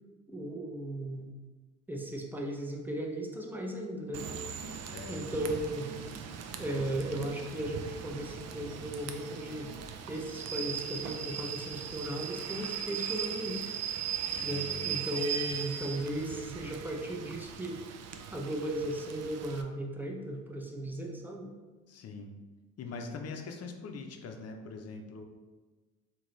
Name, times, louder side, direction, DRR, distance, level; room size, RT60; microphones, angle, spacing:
voice 1, 0.3-1.3 1.9-4.3 5.1-5.9 6.6-9.7 10.1-13.7 14.4-17.8 18.3-21.5, right 1 dB, 5° right, 1 dB, 0.6 m, -36 dB
Rain / Train, 4.1-19.6, right 8 dB, 60° right, 0.4 m, -39 dB
voice 2, 14.4-14.9 21.9-22.3 22.8-25.2, left 4 dB, 55° left, 4 dB, 0.6 m, -42 dB
3.8 x 2.8 x 3.1 m, 1.2 s
cardioid pair, 90°, 30 cm